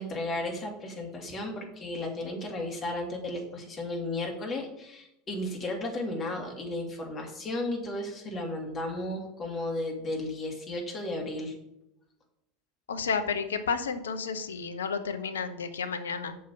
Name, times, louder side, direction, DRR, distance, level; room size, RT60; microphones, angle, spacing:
voice 1, 0.0-11.5, left 1 dB, 30° left, 1 dB, 2.6 m, -34 dB
voice 2, 12.9-16.4, left 5 dB, 80° left, 10 dB, 0.8 m, -31 dB
6.5 x 5.5 x 7.0 m, 0.83 s
figure-of-eight pair, 80°, 0 cm